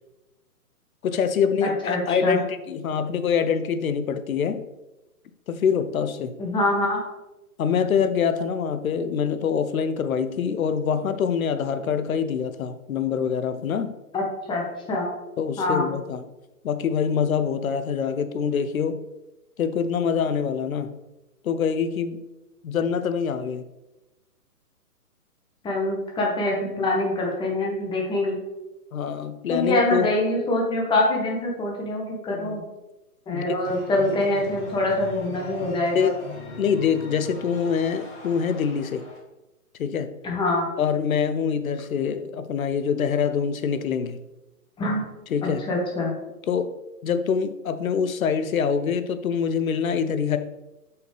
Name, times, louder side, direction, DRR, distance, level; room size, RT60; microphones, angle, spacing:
voice 1, 1.0-4.6 5.5-6.3 7.6-13.9 15.4-16.2 16.6-19.0 19.6-20.9 21.4-22.2 22.6-23.6 28.9-30.1 32.3-32.7 33.3-33.4 35.9-36.2 36.6-39.1 39.8-40.1 40.8-44.2 45.3-45.6 46.5-46.7 47.0-50.4, left 7 dB, 65° left, 11 dB, 0.8 m, -25 dB
voice 2, 1.6-2.4 6.4-7.0 14.1-15.1 15.6-15.9 25.6-28.4 29.5-32.6 33.3-36.1 40.2-40.7 44.8-45.1 45.4-46.1, left 2 dB, 10° left, -2 dB, 1.5 m, -25 dB
sound 1, 33.6-39.2, left 3 dB, 35° left, 2.3 m, -40 dB
7.6 x 5.8 x 3.4 m, 1.0 s
hypercardioid pair, 135°, 45 cm